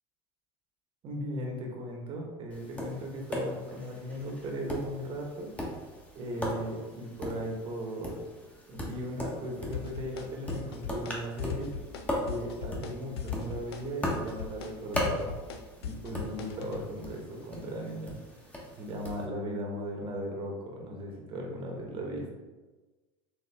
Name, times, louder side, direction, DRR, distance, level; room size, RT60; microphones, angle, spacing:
voice 1, 1.0-5.5 6.1-8.2 8.7-11.7 12.2-15.3 15.8-18.2 18.8-22.3, equal, 40° right, 1 dB, 1.1 m, -37 dB
Tap, 2.5-19.3, left 1 dB, 10° left, 1.0 m, -39 dB
sound 1, 9.7-10.2 10.5-11.1 11.4-12.0 12.3-12.9 13.2-16.8, left 7 dB, 85° left, 0.5 m, -38 dB
4.4 x 2.9 x 3.4 m, 1.2 s
hypercardioid pair, 100°, 13 cm